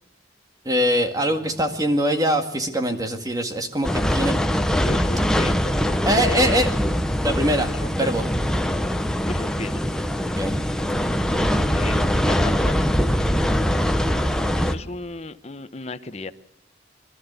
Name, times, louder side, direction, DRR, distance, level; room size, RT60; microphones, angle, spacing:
voice 1, 0.7-4.4 6.0-6.7 7.2-8.2 10.3-10.5, equal, 20° right, 6 dB, 2.0 m, -23 dB
voice 2, 1.3-1.8 4.8-6.6 7.7-8.1 9.3-9.8 11.5-12.8 14.1-16.3, left 3 dB, 35° left, 11 dB, 0.9 m, -35 dB
sound 1, 3.8-14.8, equal, 5° left, 1.0 m, -22 dB
25.0 x 13.0 x 8.2 m, 0.77 s
head